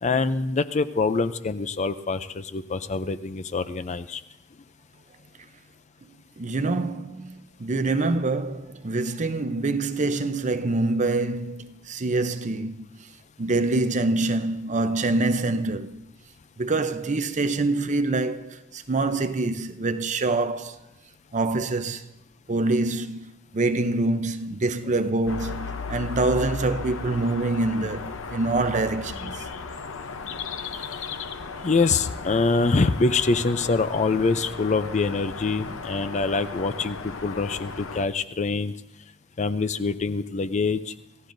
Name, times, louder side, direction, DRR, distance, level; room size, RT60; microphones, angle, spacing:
voice 1, 0.0-4.2 31.6-38.7 39.4-40.9, left 3 dB, 35° left, 0.5 m, -25 dB
voice 2, 6.4-12.9 13.4-16.0 16.6-20.8 21.3-22.0 22.5-23.3 23.5-29.5, right 2 dB, 35° right, 0.6 m, -25 dB
sound 1, 25.3-38.1, left 4 dB, 80° left, 0.8 m, -35 dB
28.0 x 15.0 x 2.6 m
head